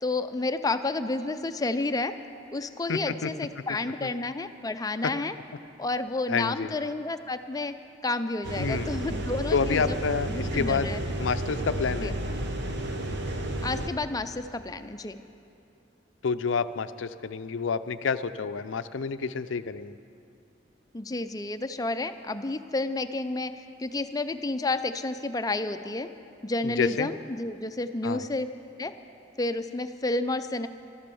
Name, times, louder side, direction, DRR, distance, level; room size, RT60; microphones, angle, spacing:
voice 1, 0.0-2.1 2.5-5.3 5.8-7.7 8.0-10.0 10.3-11.0 12.0-12.1 13.6-15.2 20.9-26.1 26.4-28.5 28.8-28.9 29.4-30.7, left 2 dB, 20° left, 10 dB, 0.5 m, -30 dB
voice 2, 2.9-3.3 4.0-4.1 6.3-6.7 8.6-8.9 9.5-10.9 11.2-12.1 16.2-19.9 26.6-27.1 28.0-28.2, left 5 dB, 80° left, 12 dB, 0.5 m, -29 dB
sound 1, 8.4-13.9, right 1 dB, 60° right, 1.1 m, -32 dB
13.0 x 12.0 x 7.0 m, 2.5 s
head